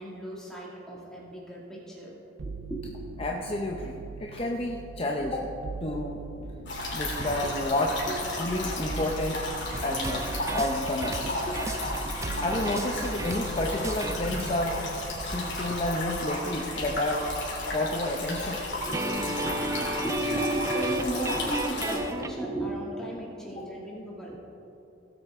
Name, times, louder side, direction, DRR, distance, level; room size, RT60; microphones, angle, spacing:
voice 1, 0.0-2.9 7.2-7.3 8.1-8.2 8.8-8.9 11.2-11.3 12.0-12.4 15.4-15.5 18.7-24.3, right 1 dB, 5° left, -5 dB, 2.2 m, -35 dB
sound 1, 2.4-19.8 20.1-20.9, right 4 dB, 70° right, 0.5 m, -43 dB
voice 2, 3.2-5.5 5.8-6.2 6.9-8.0 8.4-9.4 9.8-11.2 12.4-14.8 15.2-17.3 17.7-18.6, left 1 dB, 30° left, 0 dB, 0.7 m, -30 dB
sound 2, 6.7-22.0, left 2 dB, 60° left, 2.9 m, -34 dB
sound 3, 9.7-14.4 18.9-22.3, right 1 dB, 15° right, 0.4 m, -33 dB
18.0 x 8.0 x 3.6 m, 2.9 s
head